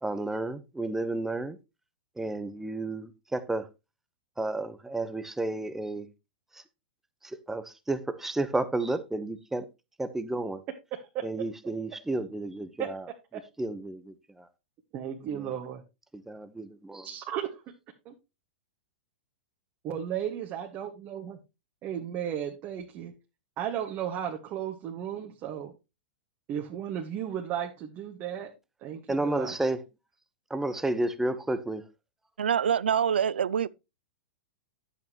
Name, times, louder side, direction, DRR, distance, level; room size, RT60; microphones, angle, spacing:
voice 1, 0.0-1.6 2.2-3.7 4.4-6.1 6.5-6.6 7.2-9.7 10.0-10.6 11.2-13.1 13.6-14.5 15.3-15.5 16.1-17.1 29.1-29.8 30.5-31.8, right 2 dB, 5° right, 1.1 m, -32 dB
voice 2, 10.9-11.2 12.8-12.9 13.3-13.4 14.9-15.8 17.0-17.6 18.1-18.2 19.8-21.4 21.8-23.1 23.6-25.7 26.5-28.5 28.8-29.5, right 9 dB, 35° right, 1.7 m, -34 dB
voice 3, 32.4-33.7, right 8 dB, 80° right, 0.5 m, -25 dB
10.5 x 8.4 x 3.1 m
hypercardioid pair, 115°, 6 cm